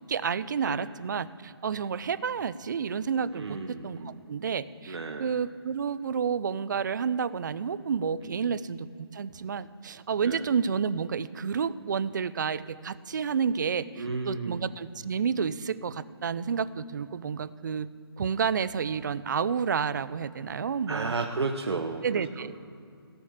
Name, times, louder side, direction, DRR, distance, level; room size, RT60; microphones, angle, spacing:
voice 1, 0.0-17.9 18.2-21.1 22.0-22.5, right 6 dB, 45° right, 17 dB, 0.5 m, -30 dB
voice 2, 3.3-4.2 4.9-5.3 8.3-8.5 10.2-10.4 14.0-14.7 20.9-22.5, right 3 dB, 80° right, 3 dB, 1.1 m, -33 dB
17.0 x 6.4 x 7.2 m, 2.4 s
hypercardioid pair, 160°, 14 cm